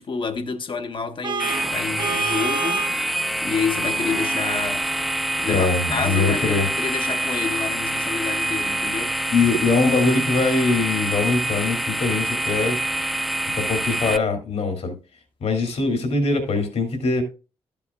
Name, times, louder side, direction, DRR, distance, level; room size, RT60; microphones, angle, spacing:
voice 1, 0.0-4.9 5.4-9.2, left 5 dB, 50° left, 1.1 m, -29 dB
Vehicle horn car horn honking, 1.2-3.0, right 5 dB, 45° right, 0.7 m, -28 dB
sound 1, 1.4-14.2, right 1 dB, ahead, 0.6 m, -26 dB
voice 2, 5.5-6.7 9.3-12.8 13.6-15.0 15.4-17.2, left 3 dB, 70° left, 2.5 m, -22 dB
13.0 x 7.1 x 2.3 m
cardioid pair, 80°, 11 cm